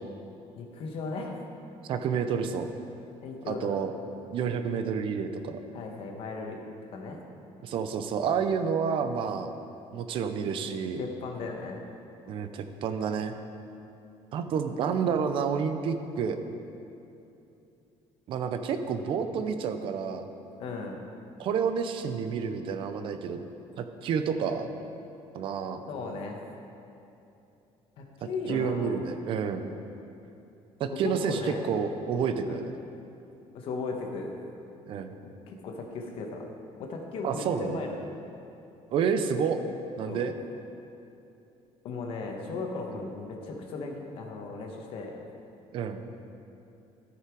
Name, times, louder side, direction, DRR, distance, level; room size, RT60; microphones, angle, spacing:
voice 1, 0.5-1.4 3.2-3.8 5.7-6.6 6.9-7.2 11.0-11.8 20.6-20.9 25.9-26.4 28.0-28.9 31.0-31.7 32.5-32.6 33.5-34.3 35.2-36.5 36.8-38.1 40.1-40.2 41.8-45.2, left 3 dB, 50° left, 2 dB, 1.2 m, -36 dB
voice 2, 1.9-2.7 3.5-3.9 4.3-5.6 7.6-9.5 9.9-11.0 12.3-13.3 14.3-16.4 18.3-20.3 21.4-23.4 23.8-24.7 25.3-25.8 28.5-29.7 30.8-32.7 34.9-35.1 37.2-37.8 38.9-39.6 40.0-40.3 45.7-46.0, right 6 dB, 45° right, 8 dB, 0.6 m, -29 dB
13.5 x 5.8 x 4.7 m, 2.8 s
cardioid pair, 170°, 12 cm